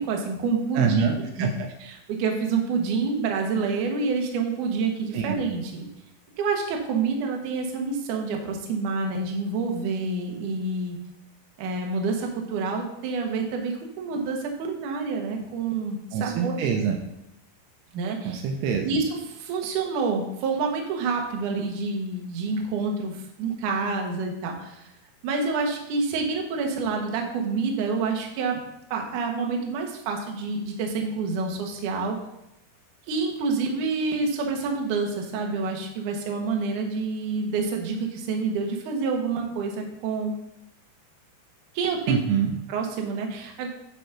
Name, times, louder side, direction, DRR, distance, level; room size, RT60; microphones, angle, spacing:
voice 1, 0.0-1.1 1.4-1.5 1.8-5.9 6.4-11.0 11.6-16.6 17.9-18.4 18.8-24.9 25.2-28.6 28.9-32.2 33.1-40.3 41.7-42.1 42.7-43.7, right 4 dB, 65° right, 1 dB, 2.2 m, -28 dB
voice 2, 0.8-1.5 5.1-5.4 16.1-17.0 18.3-18.9 42.1-42.5, right 7 dB, 80° right, 3 dB, 2.7 m, -25 dB
10.0 x 4.1 x 5.9 m, 0.84 s
omnidirectional pair, 5.0 m